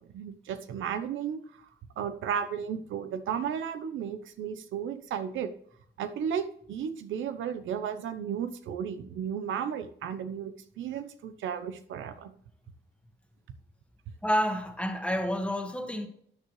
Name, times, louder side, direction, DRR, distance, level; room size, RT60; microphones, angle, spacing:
voice 1, 0.1-1.7 2.0-5.5 6.0-12.3, right 8 dB, 80° right, 0.9 m, -34 dB
voice 2, 14.2-16.1, equal, 5° left, 1.8 m, -29 dB
13.0 x 8.4 x 3.2 m
cardioid pair, 90°, 20 cm